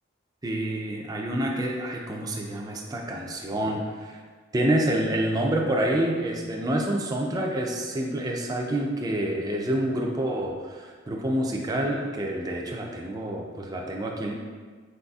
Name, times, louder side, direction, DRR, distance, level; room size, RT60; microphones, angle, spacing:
voice 1, 0.4-4.2 4.5-14.4, right 1 dB, 20° right, 0 dB, 0.3 m, -28 dB
4.1 x 3.9 x 2.3 m, 1.5 s
head